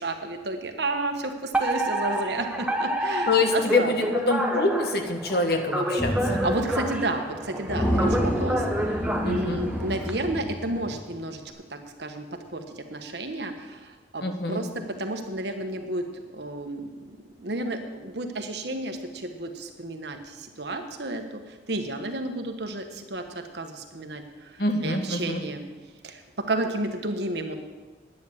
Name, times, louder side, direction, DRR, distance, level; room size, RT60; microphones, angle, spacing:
voice 1, 0.0-3.9 6.4-11.4 11.7-14.7 15.0-25.6 26.0-26.2 26.5-27.5, right 2 dB, 70° right, 5 dB, 1.4 m, -32 dB
Alarm, 1.5-10.1, right 1 dB, 5° right, 0.9 m, -29 dB
voice 2, 3.3-6.4 9.2-9.6 14.2-14.6 24.6-25.4, left 2 dB, 60° left, 5 dB, 1.5 m, -25 dB
sound 1, 6.0-7.0 7.3-7.4 7.7-11.1, equal, 10° left, 1.5 m, -28 dB
10.5 x 9.6 x 7.4 m, 1.3 s
head